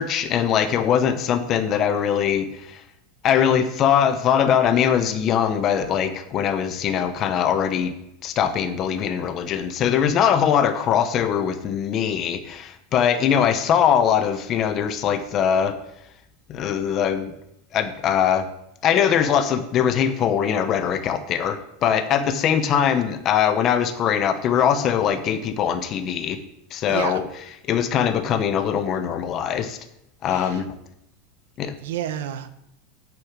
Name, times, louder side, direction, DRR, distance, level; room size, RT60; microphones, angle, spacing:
voice 1, 0.0-2.8 3.2-7.9 8.2-15.7 16.5-17.3 17.7-18.5 18.8-26.4 26.7-27.3 27.7-29.8 30.2-30.7 31.6-31.7, left 8 dB, 25° left, 9 dB, 0.8 m, -21 dB
voice 2, 26.9-27.2 30.3-30.6 31.8-32.5, right 10 dB, 75° right, 11 dB, 1.0 m, -30 dB
9.0 x 6.8 x 7.3 m, 0.81 s
supercardioid pair, 170°, 0 cm